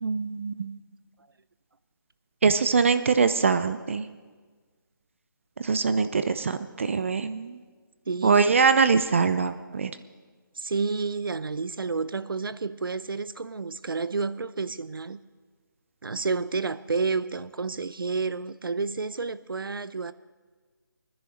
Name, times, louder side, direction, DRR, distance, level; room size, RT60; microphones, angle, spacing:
voice 1, 0.0-0.8 2.4-4.1 5.6-7.6 8.2-9.9, right 5 dB, 35° right, 0.6 m, -23 dB
voice 2, 8.1-8.4 10.6-15.2 16.0-20.1, right 4 dB, 80° right, 0.7 m, -30 dB
22.0 x 10.5 x 6.4 m
figure-of-eight pair, 165°, 11 cm